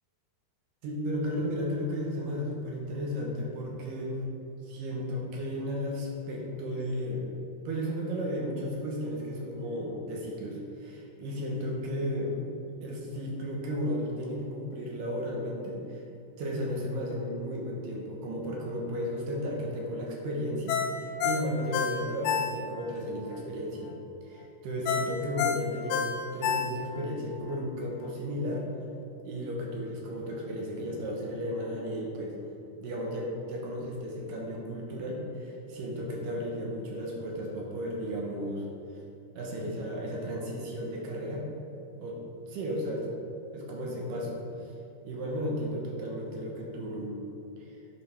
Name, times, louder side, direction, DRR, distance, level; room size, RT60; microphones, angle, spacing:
voice 1, 0.8-4.2 4.6-7.3 7.7-12.4 12.8-16.0 16.4-23.9 24.2-28.7 29.2-32.4 32.8-38.7 39.4-41.5 42.0-42.2 42.5-43.1 43.5-44.7 45.0-47.2 47.6-47.8, equal, 70° right, -2 dB, 2.2 m, -34 dB
Ringtone, 20.7-22.9 23.3-23.4 24.9-27.1 27.5-27.6, left 7 dB, 80° left, 2.2 m, -29 dB
11.0 x 5.0 x 3.4 m, 2.6 s
omnidirectional pair, 4.7 m